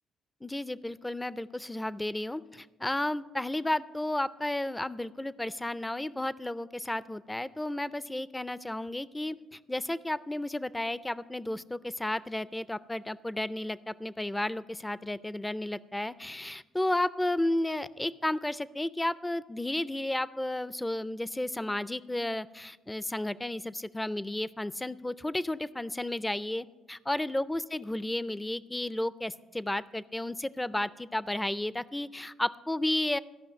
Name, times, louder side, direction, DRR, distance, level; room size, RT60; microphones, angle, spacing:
voice 1, 0.4-33.2, left 1 dB, 10° left, 18 dB, 0.4 m, -33 dB
14.0 x 5.7 x 8.3 m, 1.2 s
cardioid pair, 90°, 0 cm